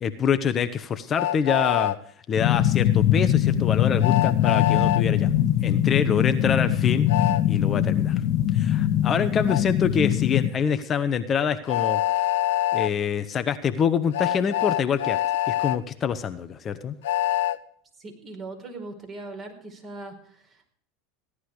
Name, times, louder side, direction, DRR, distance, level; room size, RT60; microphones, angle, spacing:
voice 1, 0.0-1.9 2.3-5.3 5.6-8.2 8.5-12.0 12.7-15.2 15.5-17.0, left 7 dB, 35° left, 9 dB, 1.2 m, -26 dB
Train, 1.2-2.0 4.0-5.0 7.1-7.4 9.5-9.6 11.7-12.9 14.1-15.8 17.0-17.6, left 13 dB, 75° left, 0.8 m, -24 dB
sound 1, 2.4-10.5, left 11 dB, 50° left, 1.7 m, -22 dB
voice 2, 18.0-20.7, right 2 dB, 35° right, 3 dB, 5.0 m, -40 dB
16.5 x 11.5 x 4.9 m, 0.62 s
hypercardioid pair, 95°, 0 cm